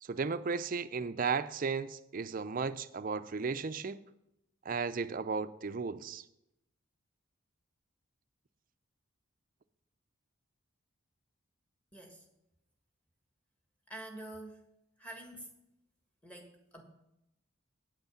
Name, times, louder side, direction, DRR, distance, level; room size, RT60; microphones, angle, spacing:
voice 1, 0.1-4.0 4.7-6.2, right 5 dB, 40° right, 13 dB, 0.4 m, -35 dB
voice 2, 11.9-12.3 13.9-14.6 15.0-15.5 16.2-16.8, right 1 dB, 5° left, 2 dB, 1.6 m, -47 dB
8.9 x 8.1 x 7.0 m, 0.85 s
head